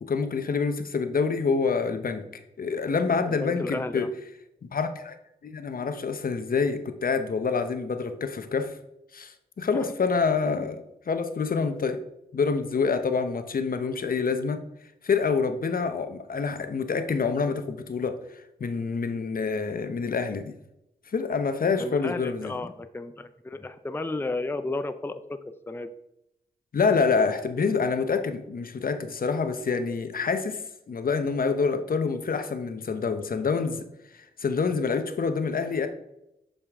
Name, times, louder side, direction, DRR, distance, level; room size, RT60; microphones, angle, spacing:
voice 1, 0.0-4.1 4.6-5.2 5.4-8.7 9.1-12.0 12.3-14.6 15.0-20.5 21.1-22.5 26.7-30.6 30.9-33.8 34.1-35.9, left 5 dB, 55° left, 9 dB, 0.9 m, -27 dB
voice 2, 3.3-4.1 9.7-9.9 21.8-25.9, left 2 dB, 15° left, 10 dB, 0.5 m, -33 dB
7.0 x 5.2 x 3.6 m, 0.85 s
supercardioid pair, 40°, 17 cm